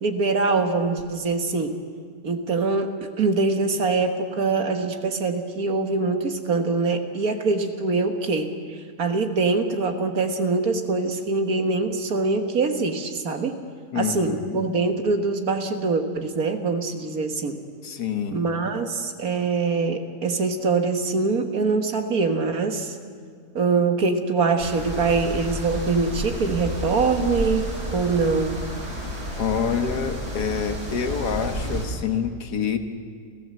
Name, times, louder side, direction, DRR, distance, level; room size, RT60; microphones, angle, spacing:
voice 1, 0.0-1.8 2.2-8.5 9.0-13.6 14.0-17.6 18.3-23.0 23.6-28.6, right 4 dB, 60° right, 6 dB, 1.9 m, -24 dB
voice 2, 13.9-14.6 17.8-18.5 29.4-32.8, left 7 dB, 75° left, 8 dB, 2.0 m, -27 dB
sound 1, 24.6-31.8, equal, 35° right, 4.7 m, -31 dB
29.5 x 15.0 x 7.7 m, 2.1 s
omnidirectional pair, 1.7 m